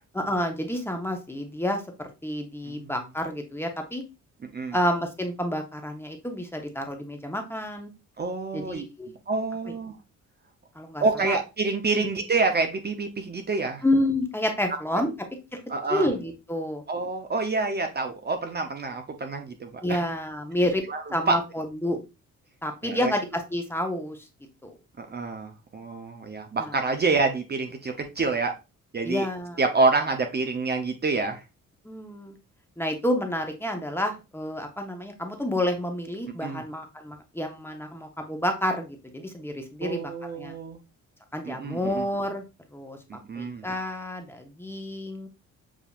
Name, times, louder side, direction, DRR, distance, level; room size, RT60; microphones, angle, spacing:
voice 1, 0.1-4.0 4.7-7.9 8.5-9.1 10.8-11.4 13.8-15.1 15.9-16.8 19.8-20.8 21.1-22.0 22.6-24.2 24.6-24.7 26.6-26.8 29.0-29.6 31.8-32.3 32.8-40.1 40.4-40.6 41.3-42.4 42.7-43.0 43.4-45.3, left 1 dB, 5° left, 4 dB, 0.9 m, -29 dB
voice 2, 8.2-8.8 9.3-9.9 11.0-13.8 14.7-14.8 15.7-16.1 16.9-20.0 20.9-21.4 22.8-23.1 25.0-28.5 28.9-29.3 29.6-31.4 36.4-36.6 39.8-40.8 41.4-42.1 43.1-43.6, right 3 dB, 30° right, 5 dB, 0.7 m, -27 dB
7.1 x 2.7 x 2.4 m, 0.27 s
cardioid pair, 105°, 31 cm